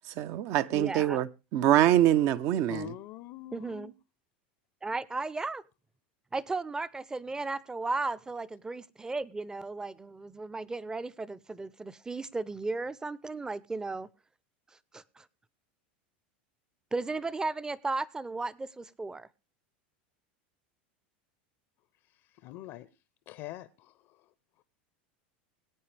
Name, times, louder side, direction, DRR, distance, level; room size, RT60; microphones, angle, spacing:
voice 1, 0.1-2.9, right 12 dB, 55° right, 0.8 m, -25 dB
voice 2, 0.7-1.2 3.5-3.9 4.8-5.6 6.3-14.1 14.9-15.2 16.9-19.3, right 3 dB, 10° right, 0.7 m, -35 dB
voice 3, 2.7-3.9 22.1-22.9 23.3-24.3, left 15 dB, 55° left, 0.7 m, -44 dB
20.5 x 8.8 x 3.4 m
hypercardioid pair, 100°, 5 cm